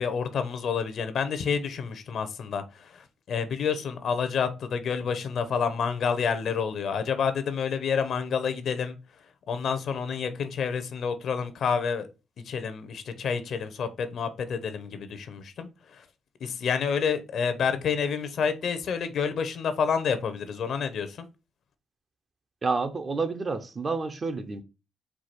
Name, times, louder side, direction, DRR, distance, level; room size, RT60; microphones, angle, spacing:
voice 1, 0.0-9.0 9.5-12.1 12.5-16.0 16.4-21.3, left 6 dB, 65° left, 0.7 m, -29 dB
voice 2, 22.6-24.6, right 4 dB, 35° right, 0.6 m, -29 dB
4.6 x 2.3 x 4.2 m
cardioid pair, 90°, 0 cm